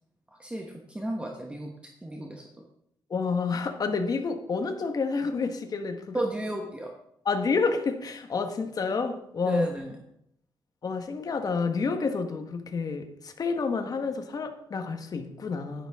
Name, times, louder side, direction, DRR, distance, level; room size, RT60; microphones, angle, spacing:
voice 1, 0.4-1.7 2.0-2.4 6.1-6.9 9.4-10.0, right 1 dB, 15° right, 1 dB, 1.2 m, -32 dB
voice 2, 3.1-6.2 7.2-9.7 10.8-15.9, left 4 dB, 45° left, 7 dB, 1.3 m, -29 dB
11.0 x 10.5 x 3.6 m, 0.74 s
cardioid pair, 120°, 9 cm